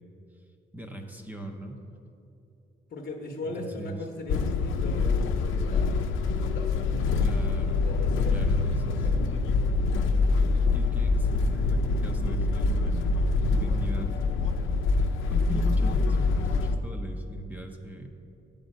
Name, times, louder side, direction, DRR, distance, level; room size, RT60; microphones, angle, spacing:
voice 1, 0.7-1.8 3.5-4.0 7.2-7.8 8.3-9.1 10.7-14.2 15.3-18.1, right 1 dB, 10° right, 3 dB, 0.6 m, -39 dB
voice 2, 2.9-6.0 6.5-7.3 7.8-8.5 8.8-9.3, left 2 dB, 50° left, 2 dB, 0.9 m, -39 dB
sound 1, 4.3-16.8, left 3 dB, 90° left, 0.6 m, -25 dB
9.0 x 5.1 x 7.3 m, 2.7 s
cardioid pair, 160°, 20 cm